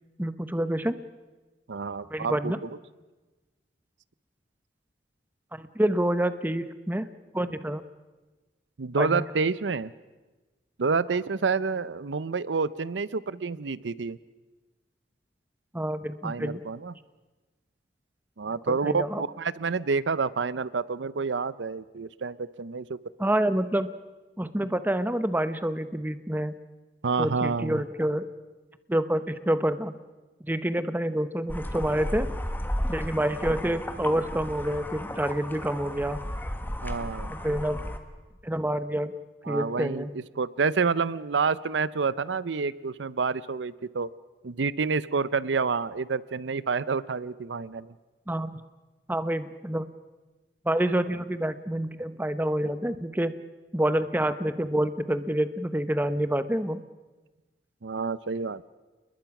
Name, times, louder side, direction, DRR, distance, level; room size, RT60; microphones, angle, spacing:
voice 1, 0.2-1.0 2.1-2.6 5.5-7.1 7.3-7.8 9.0-9.3 15.7-16.6 18.7-19.2 23.2-23.9 24.4-26.6 27.2-28.2 28.9-30.0 30.4-32.3 32.9-36.2 37.3-37.8 38.4-39.1 39.5-40.1 48.3-48.6 49.1-49.9 50.6-53.3 53.7-56.8, right 1 dB, 10° right, 12 dB, 0.9 m, -27 dB
voice 2, 1.7-2.7 8.8-9.9 10.8-14.2 16.2-16.9 18.4-23.3 27.0-27.8 36.8-37.3 39.4-44.1 44.4-47.9 57.8-58.7, right 4 dB, 90° right, 18 dB, 0.6 m, -28 dB
sound 1, 31.5-38.0, equal, 10° left, 1.5 m, -34 dB
29.5 x 21.0 x 6.0 m, 1.2 s
head